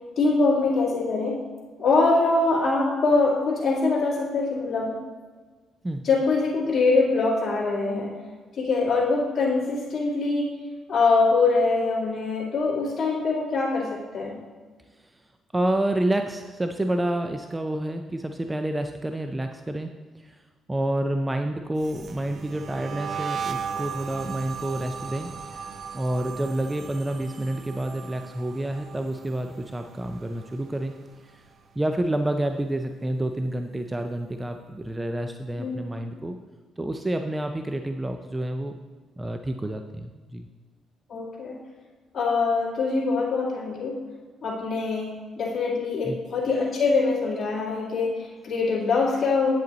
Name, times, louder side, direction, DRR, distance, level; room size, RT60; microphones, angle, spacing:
voice 1, 0.2-1.4 1.8-4.9 6.0-8.1 8.6-10.5 10.9-14.4 35.6-35.8 41.1-41.6 42.1-44.0 44.4-45.1 45.4-49.5, left 3 dB, 45° left, -9 dB, 2.3 m, -23 dB
voice 2, 15.5-19.9 20.1-20.4 20.7-25.7 25.9-30.9 31.3-31.4 31.8-36.4 36.8-38.8 39.2-40.5 46.0-46.2, right 1 dB, 15° right, 6 dB, 0.5 m, -29 dB
sound 1, 21.8-31.0 31.2-31.7 32.0-33.5, right 7 dB, 50° right, 0.7 m, -37 dB
8.9 x 7.9 x 4.1 m, 1.4 s
cardioid pair, 90°, 0 cm